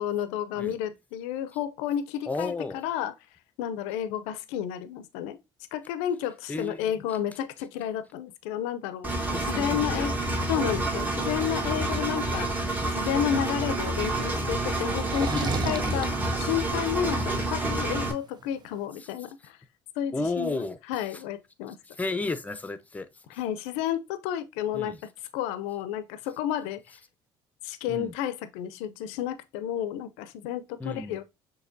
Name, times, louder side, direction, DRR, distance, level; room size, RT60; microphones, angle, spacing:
voice 1, 0.0-3.1 3.6-5.4 5.7-10.2 10.5-16.1 16.4-19.6 20.0-21.8 23.3-24.9 25.3-27.0 27.6-31.2, left 10 dB, 85° left, 0.6 m, -31 dB
voice 2, 2.3-2.8 6.5-7.2 9.3-10.2 10.8-10.9 15.3-16.0 19.0-19.1 20.1-20.8 21.1-21.2 21.8-23.1 24.7-25.0 27.9-28.1 30.8-31.2, left 3 dB, 15° left, 0.7 m, -33 dB
Engine, 9.0-18.1, right 2 dB, 15° right, 1.3 m, -28 dB
sound 1, 13.8-18.8, right 6 dB, 40° right, 0.6 m, -37 dB
6.4 x 2.9 x 2.6 m
supercardioid pair, 85°, 11 cm